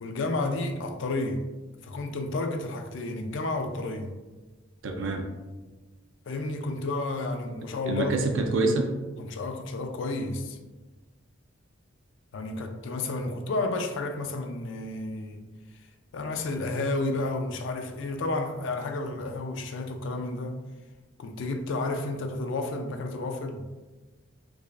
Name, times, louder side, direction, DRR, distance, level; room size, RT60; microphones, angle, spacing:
voice 1, 0.0-1.4 1.8-4.1 6.3-8.1 9.2-10.6 12.3-15.5 16.1-20.6 21.2-23.6, left 2 dB, 65° left, 0.4 m, -31 dB
voice 2, 4.8-5.3 7.9-8.9, right 3 dB, 70° right, 0.5 m, -26 dB
4.7 x 2.4 x 2.4 m
head